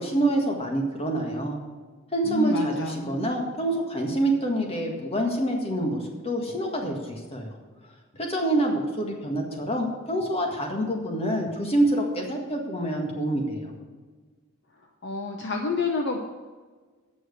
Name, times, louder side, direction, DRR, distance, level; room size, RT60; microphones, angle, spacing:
voice 1, 0.0-1.6 2.1-7.5 8.2-13.7, right 1 dB, 30° left, 1 dB, 1.7 m, -26 dB
voice 2, 2.3-3.2 15.0-16.2, left 3 dB, 55° left, 3 dB, 0.8 m, -28 dB
8.8 x 6.2 x 8.1 m, 1.4 s
head